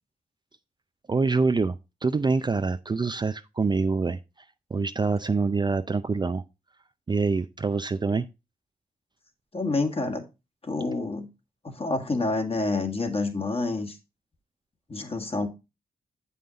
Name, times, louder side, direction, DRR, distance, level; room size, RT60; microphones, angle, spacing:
voice 1, 1.1-4.2 4.7-6.4 7.1-8.3, right 4 dB, 25° right, 0.5 m, -25 dB
voice 2, 9.5-10.2 10.6-11.3 11.6-14.0 14.9-15.5, left 3 dB, 35° left, 1.8 m, -28 dB
7.4 x 5.6 x 3.9 m
supercardioid pair, 50°, 16 cm